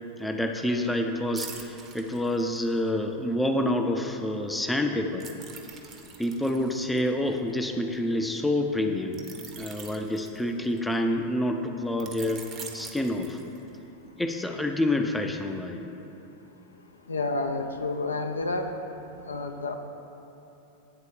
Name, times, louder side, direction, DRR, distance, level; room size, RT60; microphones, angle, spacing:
voice 1, 0.2-5.3 6.2-9.2 9.6-12.5 12.7-13.4 14.2-15.8, left 1 dB, 5° left, 4 dB, 0.5 m, -28 dB
sound 1, 1.4-2.9 5.2-7.9 9.1-11.0 12.0-13.8 14.3-14.5, right 6 dB, 30° right, 0.8 m, -44 dB
voice 2, 17.1-18.7 19.3-19.7, left 3 dB, 75° left, 5 dB, 0.5 m, -29 dB
8.8 x 4.0 x 6.7 m, 2.9 s
figure-of-eight pair, 90°, 0 cm